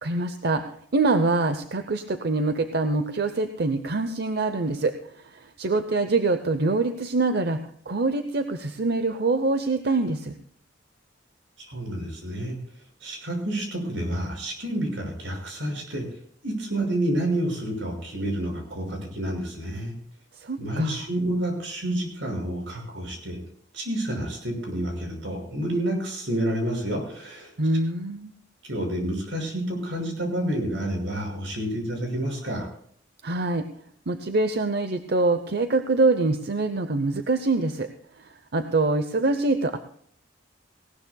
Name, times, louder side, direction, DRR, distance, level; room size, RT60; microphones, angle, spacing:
voice 1, 0.0-4.9 5.3-10.3 20.4-21.0 27.6-28.3 33.2-33.7 34.1-37.9 38.2-39.8, right 3 dB, 60° right, 8 dB, 0.8 m, -25 dB
voice 2, 11.6-12.6 13.0-16.0 16.4-19.9 20.6-23.4 23.7-27.5 28.6-32.7, right 1 dB, 85° right, 2 dB, 6.0 m, -29 dB
19.0 x 18.0 x 2.3 m, 0.62 s
head